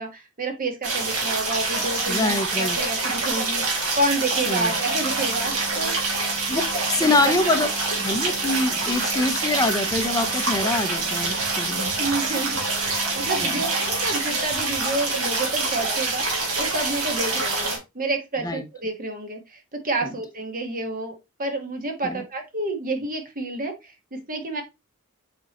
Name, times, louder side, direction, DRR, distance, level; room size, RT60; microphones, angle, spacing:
voice 1, 0.0-5.9 7.0-7.5 12.0-12.6 12.9-16.3 16.6-21.1 21.4-24.6, right 2 dB, 40° right, 5 dB, 1.4 m, -29 dB
sound 1, 0.8-17.8, right 3 dB, 80° right, 2.8 m, -26 dB
voice 2, 2.1-2.8 4.5-4.7 6.5-7.7 8.0-11.9 13.4-13.6 18.4-18.6 22.0-22.1, left 2 dB, 15° left, 8 dB, 0.7 m, -24 dB
sound 2, 9.9-10.0 10.2-10.3 10.5-10.8 11.2-11.5 11.9-12.1 12.5-12.6 12.9-13.0 13.2-13.4 13.9-14.1 14.5-14.7, right 3 dB, 60° right, 2.5 m, -45 dB
7.3 x 4.4 x 2.9 m, 0.24 s
head